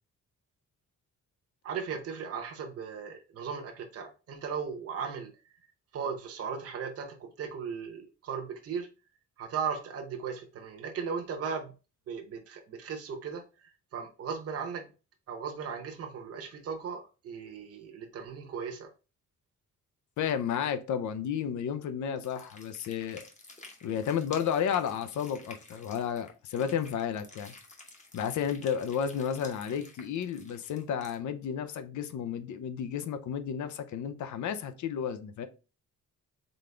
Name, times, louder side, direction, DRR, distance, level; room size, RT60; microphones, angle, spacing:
voice 1, 1.6-5.3 5.9-8.9 9.4-11.7 12.1-14.9 15.3-18.9, right 6 dB, 50° right, 0.9 m, -37 dB
voice 2, 20.2-23.2 23.8-27.5 28.1-35.5, left 8 dB, 75° left, 0.6 m, -32 dB
sound 1, 22.2-31.1, left 3 dB, 25° left, 0.9 m, -52 dB
4.0 x 3.8 x 3.3 m
wide cardioid pair, 170°, 30 cm